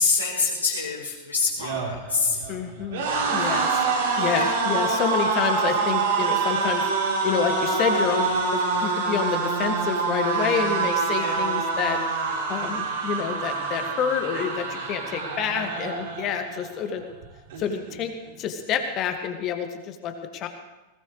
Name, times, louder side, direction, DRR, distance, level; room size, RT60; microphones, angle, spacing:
voice 1, 0.0-2.4 4.2-4.6 11.1-11.4, left 4 dB, 80° left, -8 dB, 4.7 m, -26 dB
sound 1, 1.5-16.7 17.0-17.3 17.5-18.3, right 4 dB, 55° right, 3.6 m, -26 dB
voice 2, 2.5-3.8 4.2-6.9 7.2-12.0 12.5-17.0 17.6-18.1 18.4-20.5, left 8 dB, 35° left, 6 dB, 2.0 m, -28 dB
20.0 x 19.5 x 3.3 m, 1.1 s
figure-of-eight pair, 90°, 0 cm